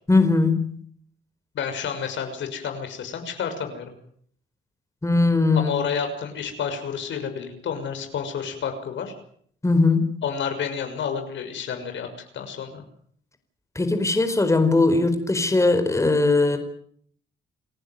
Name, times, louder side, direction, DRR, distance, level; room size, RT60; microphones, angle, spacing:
voice 1, 0.1-0.8 5.0-5.8 9.6-10.2 13.7-16.6, left 3 dB, 15° left, 7 dB, 4.6 m, -20 dB
voice 2, 1.5-3.9 5.5-9.1 10.2-12.1 12.3-12.8, left 7 dB, 70° left, 6 dB, 6.3 m, -30 dB
29.0 x 15.0 x 9.5 m, 0.62 s
cardioid pair, 90°, 20 cm